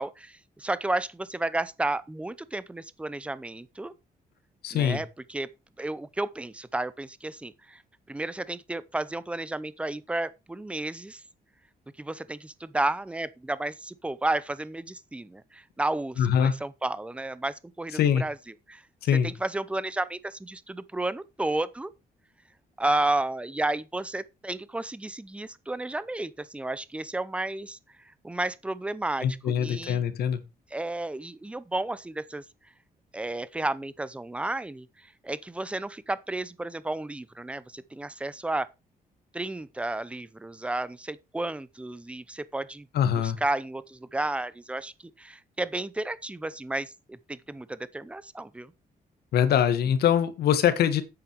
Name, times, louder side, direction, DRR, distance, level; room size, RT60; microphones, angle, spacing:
voice 1, 0.0-3.9 4.7-5.5 5.8-7.8 8.1-11.2 12.0-18.4 18.7-18.8 19.1-21.9 22.8-30.0 30.7-32.4 33.1-38.7 39.3-42.9 43.2-48.7, right 2 dB, 5° right, 0.6 m, -32 dB
voice 2, 4.6-5.0 16.2-16.5 18.0-18.2 19.0-19.3 29.2-30.4 42.9-43.4 49.3-51.0, left 9 dB, 90° left, 1.6 m, -23 dB
9.2 x 8.8 x 4.7 m
cardioid pair, 165°, 16 cm